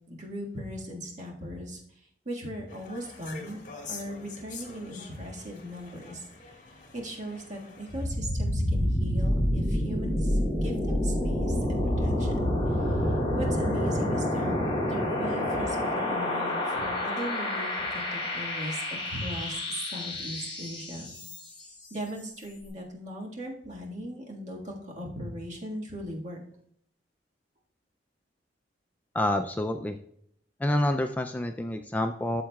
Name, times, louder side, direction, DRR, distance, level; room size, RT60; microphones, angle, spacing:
voice 1, 0.1-1.8 2.2-3.6 3.9-6.2 6.9-12.8 13.3-21.1 21.9-26.4, equal, 45° right, -2 dB, 1.7 m, -38 dB
sound 1, 2.7-8.1, left 4 dB, 45° left, 1.7 m, -45 dB
sound 2, 7.9-21.7, left 1 dB, 25° left, 3.6 m, -28 dB
voice 2, 29.1-30.0 30.6-32.4, left 1 dB, 10° left, 6 dB, 0.3 m, -28 dB
13.0 x 7.2 x 2.3 m, 0.68 s
head